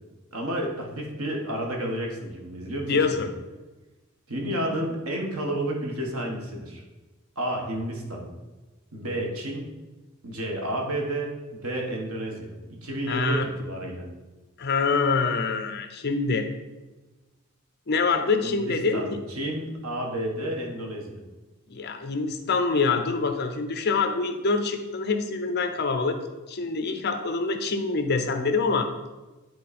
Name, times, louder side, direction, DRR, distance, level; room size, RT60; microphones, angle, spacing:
voice 1, 0.3-3.3 4.3-6.8 7.3-8.3 8.9-9.7 10.2-14.0 18.4-21.2, right 1 dB, 90° right, 0 dB, 1.5 m, -31 dB
voice 2, 2.9-3.3 13.1-13.5 14.6-16.5 17.9-19.2 21.7-26.2 26.5-28.9, left 4 dB, 50° left, 6 dB, 0.7 m, -25 dB
9.5 x 4.1 x 4.2 m, 1.2 s
head